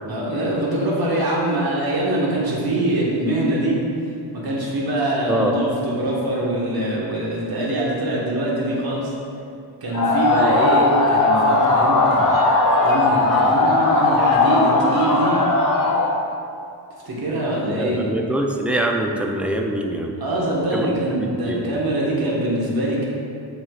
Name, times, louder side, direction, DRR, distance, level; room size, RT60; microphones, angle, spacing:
voice 1, 0.1-3.8 4.3-9.1 9.8-12.2 12.8-15.4 17.0-18.1 20.2-23.1, right 1 dB, 50° right, -5 dB, 1.5 m, -23 dB
sound 1, 9.9-16.1, left 2 dB, 40° left, 1.2 m, -18 dB
voice 2, 17.8-20.2 20.7-21.6, right 1 dB, 5° right, 1 dB, 0.4 m, -24 dB
7.8 x 5.6 x 2.4 m, 2.5 s
cardioid pair, 115°, 48 cm